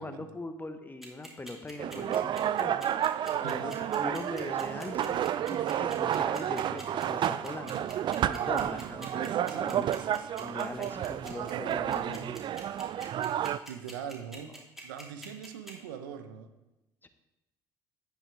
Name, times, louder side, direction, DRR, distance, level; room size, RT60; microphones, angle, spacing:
voice 1, 0.0-7.9 8.3-9.9 10.4-12.4 17.0-17.1, left 2 dB, 15° left, 8 dB, 1.0 m, -41 dB
sound 1, 1.0-15.7, right 1 dB, ahead, 2.9 m, -46 dB
sound 2, 1.8-13.6, right 10 dB, 45° right, 0.4 m, -31 dB
sound 3, 2.5-10.9, right 2 dB, 50° left, 2.3 m, -59 dB
voice 2, 3.4-3.8 9.5-9.9 11.2-12.2 13.7-14.5 14.8-16.5, right 8 dB, 80° right, 8 dB, 0.7 m, -42 dB
9.8 x 7.9 x 3.4 m, 0.99 s
hypercardioid pair, 60°, 11 cm